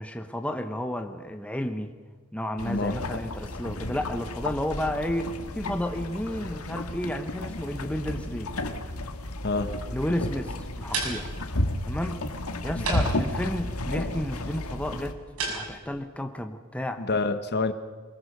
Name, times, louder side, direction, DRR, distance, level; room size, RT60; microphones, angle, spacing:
voice 1, 0.0-1.9 2.3-8.5 9.9-11.3 11.9-12.2 12.6-15.2 15.5-17.0, left 1 dB, 5° left, 5 dB, 1.1 m, -32 dB
sound 1, 2.6-15.1, left 1 dB, 90° left, 1.7 m, -33 dB
voice 2, 2.6-3.0 9.4-9.7 12.7-12.9 17.0-17.7, left 3 dB, 50° left, 9 dB, 1.3 m, -27 dB
sound 2, 10.6-16.0, right 3 dB, 85° right, 6.3 m, -37 dB
24.0 x 21.5 x 6.7 m, 1.5 s
head